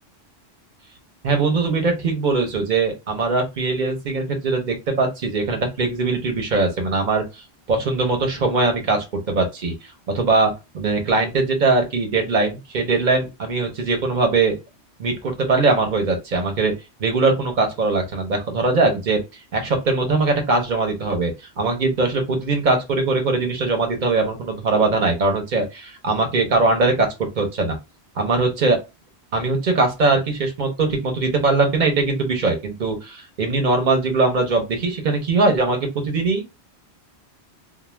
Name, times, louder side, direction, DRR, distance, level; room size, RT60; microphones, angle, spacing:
voice 1, 1.2-7.2 7.7-9.7 10.1-14.6 15.0-16.7 17.0-19.2 19.5-27.8 28.2-28.8 29.3-36.6, right 3 dB, 45° right, 4 dB, 0.8 m, -21 dB
2.3 x 2.1 x 3.1 m, 0.25 s
omnidirectional pair, 1.1 m